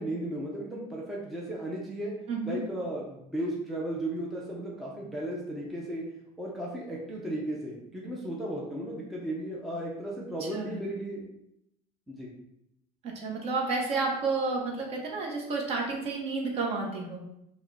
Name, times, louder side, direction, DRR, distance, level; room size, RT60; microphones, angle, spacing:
voice 1, 0.0-2.1 2.4-6.1 6.4-11.2 12.1-12.3, right 1 dB, ahead, -4 dB, 0.5 m, -35 dB
voice 2, 2.3-2.6 10.4-10.8 13.0-17.4, right 3 dB, 40° right, 0 dB, 0.8 m, -31 dB
4.9 x 2.1 x 4.0 m, 0.81 s
cardioid pair, 175°, 16 cm